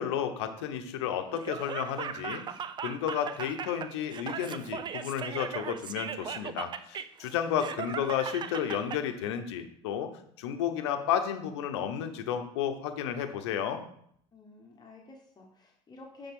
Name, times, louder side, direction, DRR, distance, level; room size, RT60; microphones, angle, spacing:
voice 1, 0.0-2.4 2.8-10.1 10.4-13.8, left 9 dB, 90° left, 7 dB, 0.8 m, -32 dB
Laughter, 1.3-9.0, right 7 dB, 35° right, 0.4 m, -38 dB
voice 2, 14.3-16.3, left 3 dB, 30° left, -1 dB, 1.1 m, -51 dB
9.9 x 3.6 x 3.7 m, 0.68 s
supercardioid pair, 90°, 14 cm